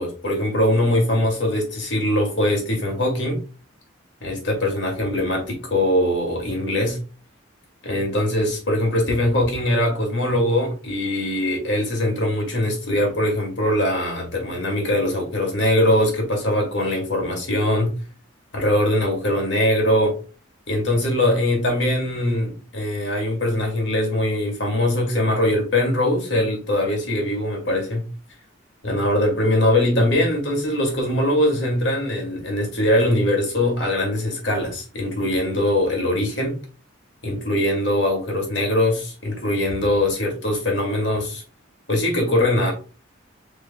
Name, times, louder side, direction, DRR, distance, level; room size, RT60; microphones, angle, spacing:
voice 1, 0.0-3.4 4.2-7.0 7.8-17.9 18.5-20.2 20.7-28.1 28.8-36.6 37.2-41.4 41.9-42.7, left 1 dB, 65° left, 2.1 m, -22 dB
5.2 x 4.3 x 2.2 m
head